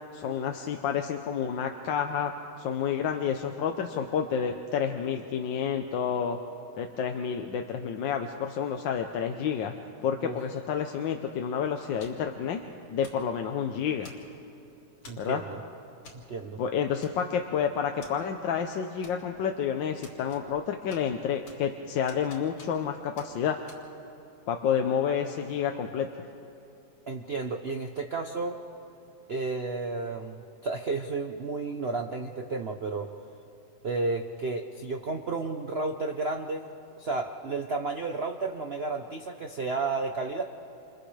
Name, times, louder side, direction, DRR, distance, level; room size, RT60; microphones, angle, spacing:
voice 1, 0.1-2.3 2.6-6.4 6.8-9.7 10.0-12.6 12.9-14.1 15.2-15.4 16.6-23.6 24.5-26.1, left 7 dB, 65° left, 4 dB, 1.4 m, -29 dB
sound 1, 12.0-12.3 13.0-13.3 14.0-14.5 15.0-15.3 16.0-16.2 16.5-16.6 17.0-17.5 18.0-18.1 19.0-19.5 20.0-20.6 20.9-21.7 22.1-22.9 23.2-23.3 23.7-23.8, left 3 dB, 85° left, 3.8 m, -50 dB
voice 2, 15.1-15.6 16.3-16.6 27.1-28.6 29.3-33.1 33.8-36.7 37.0-40.4, right 3 dB, 70° right, 4 dB, 0.6 m, -32 dB
30.0 x 28.0 x 3.3 m, 2.9 s
omnidirectional pair, 2.4 m